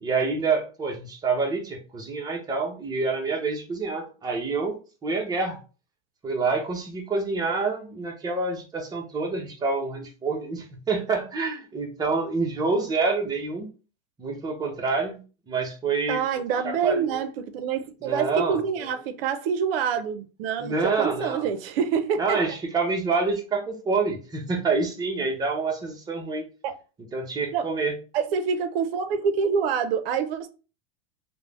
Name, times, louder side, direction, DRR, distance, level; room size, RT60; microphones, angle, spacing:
voice 1, 0.0-4.8 5.0-5.6 6.2-13.7 14.2-15.2 15.5-16.2 16.6-17.2 18.0-18.9 20.6-21.4 22.2-26.5 27.1-27.9, right 4 dB, 15° right, 0.5 m, -27 dB
voice 2, 16.1-22.4 26.6-26.8 27.5-27.7 28.1-30.5, right 6 dB, 70° right, 0.5 m, -26 dB
2.4 x 2.0 x 3.2 m
supercardioid pair, 145°, 31 cm